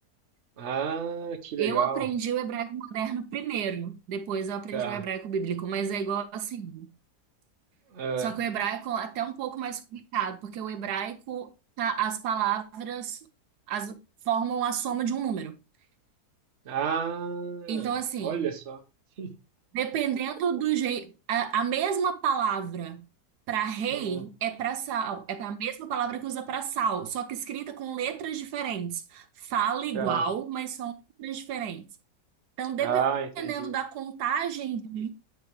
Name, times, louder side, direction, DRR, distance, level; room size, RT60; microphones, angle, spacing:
voice 1, 0.6-2.0 4.7-5.0 8.0-8.3 16.7-17.9 18.2-18.8 19.2-19.3 24.0-24.2 29.9-30.2 32.8-33.7, right 7 dB, 50° right, 1.1 m, -30 dB
voice 2, 1.6-6.9 8.2-11.5 11.8-13.2 13.7-14.0 14.3-15.6 17.7-18.5 19.7-23.0 23.5-31.9 32.6-33.0 33.4-35.1, right 8 dB, 80° right, 1.2 m, -30 dB
9.1 x 4.7 x 3.1 m
omnidirectional pair, 1.7 m